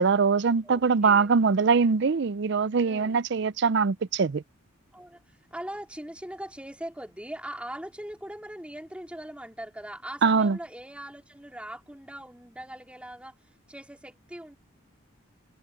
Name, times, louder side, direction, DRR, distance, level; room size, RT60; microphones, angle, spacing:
voice 1, 0.0-4.4 10.2-10.6, right 5 dB, 60° right, 0.5 m, -22 dB
voice 2, 0.6-1.3 2.8-3.2 4.9-13.3 13.7-14.6, right 1 dB, 5° right, 3.1 m, -41 dB
head